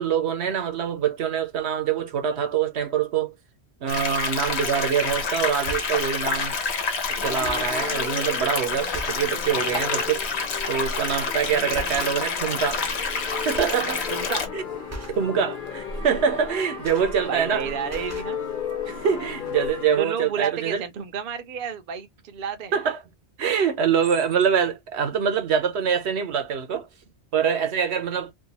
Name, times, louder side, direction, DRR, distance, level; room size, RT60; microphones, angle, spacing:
voice 1, 0.0-3.3 3.8-6.6 7.1-10.2 10.7-12.8 13.4-14.0 14.5-14.6 15.1-18.0 18.9-20.8 22.7-23.0 23.4-26.9 27.3-28.3, right 7 dB, 80° right, 1.0 m, -25 dB
sound 1, 3.9-14.5, left 5 dB, 90° left, 1.1 m, -28 dB
sound 2, 4.9-5.0 5.5-6.2 6.8-6.9 7.3-7.8 8.4-8.5 8.9-9.3 9.7-9.9 11.1-11.3 11.7-12.5 12.8-13.2 13.5-13.9 14.2-14.4 14.9-15.3 16.4-17.6 17.8-18.4 19.1-19.2 19.4-19.6, right 1 dB, 20° right, 0.4 m, -40 dB
sound 3, 7.1-20.0, left 7 dB, 50° left, 1.0 m, -35 dB
voice 2, 14.1-14.5 17.3-18.4 20.0-22.7, right 7 dB, 60° right, 0.6 m, -31 dB
2.6 x 2.3 x 2.7 m
omnidirectional pair, 1.1 m